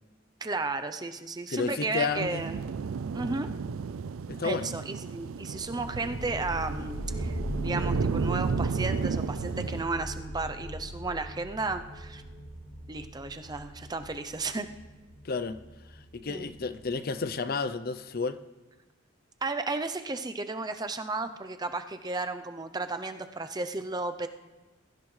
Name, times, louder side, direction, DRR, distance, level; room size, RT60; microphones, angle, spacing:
voice 1, 0.4-2.6 3.1-3.5 4.4-12.2 12.9-14.7 16.3-16.5 19.4-24.3, right 3 dB, 20° right, 0.6 m, -33 dB
voice 2, 1.5-2.4 4.3-4.7 15.2-15.6 16.1-18.4, left 4 dB, 45° left, 0.6 m, -31 dB
sound 1, 2.1-9.8, right 5 dB, 90° right, 0.4 m, -33 dB
sound 2, 5.5-16.9, equal, 70° left, 3.8 m, -38 dB
22.5 x 14.5 x 3.2 m
head